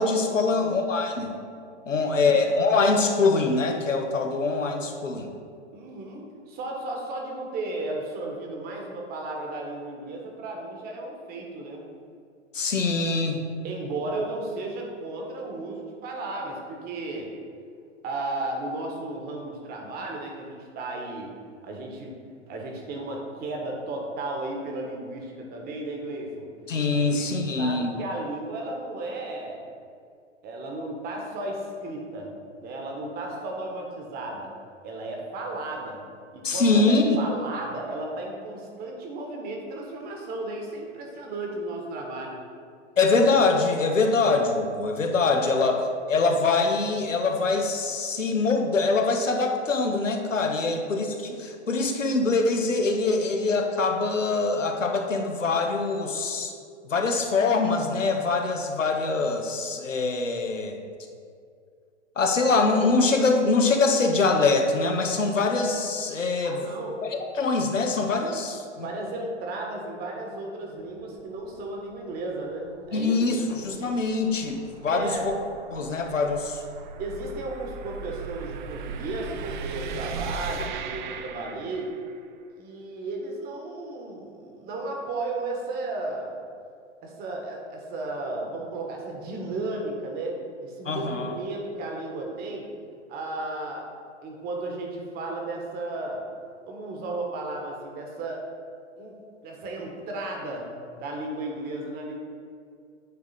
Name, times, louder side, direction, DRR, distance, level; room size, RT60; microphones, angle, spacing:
voice 1, 0.0-1.3 1.9-5.3 12.5-13.4 26.7-27.9 36.4-37.2 43.0-56.5 56.8-60.8 62.2-66.6 67.0-68.9 72.9-75.3 75.7-76.6 90.8-91.3, left 3 dB, 90° left, 3 dB, 0.9 m, -24 dB
voice 2, 1.8-2.4 5.7-11.8 13.6-17.3 18.0-21.3 21.6-22.2 22.5-26.5 26.9-29.6 30.4-32.3 32.6-34.5 34.8-36.0 36.3-42.4 45.2-45.6 50.6-50.8 66.4-67.0 68.8-73.5 74.9-75.3 77.0-81.9 82.6-86.4 87.0-92.7 93.1-93.8 94.2-96.2 96.7-98.4 99.0-99.1 99.4-100.7 101.0-102.2, right 2 dB, 25° right, 0 dB, 1.1 m, -34 dB
sound 1, 70.8-82.2, right 5 dB, 40° right, 0.4 m, -39 dB
9.2 x 3.6 x 4.0 m, 2.3 s
figure-of-eight pair, 110°, 37 cm